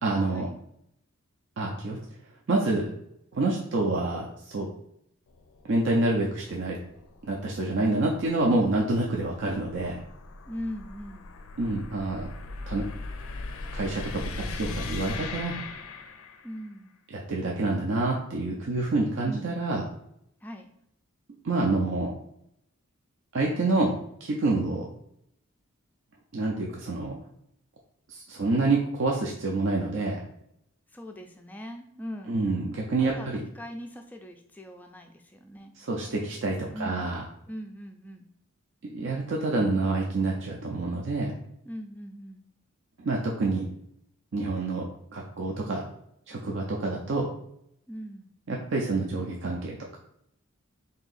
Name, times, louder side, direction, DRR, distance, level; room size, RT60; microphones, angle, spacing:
voice 1, 0.0-0.5 1.6-2.0 2.5-2.8 3.3-4.7 5.7-6.8 7.2-10.0 11.6-12.3 12.7-12.8 13.7-15.6 17.1-19.8 21.4-22.1 23.3-23.9 24.2-24.9 26.3-27.2 28.1-30.2 32.3-33.4 35.8-37.2 38.9-41.3 43.0-43.7 44.3-44.9 45.1-45.8 46.3-47.3 48.5-50.0, right 2 dB, 55° right, -1 dB, 0.5 m, -27 dB
sound 1, 5.3-16.7, left 3 dB, 75° left, 0.4 m, -40 dB
voice 2, 10.5-11.2 16.4-16.9 19.2-19.5 20.4-20.7 30.9-32.4 33.0-33.3 33.5-35.7 36.7-37.1 37.5-38.3 41.6-42.4 47.9-48.3, equal, 10° left, 3 dB, 0.3 m, -40 dB
3.5 x 2.7 x 3.9 m, 0.75 s
head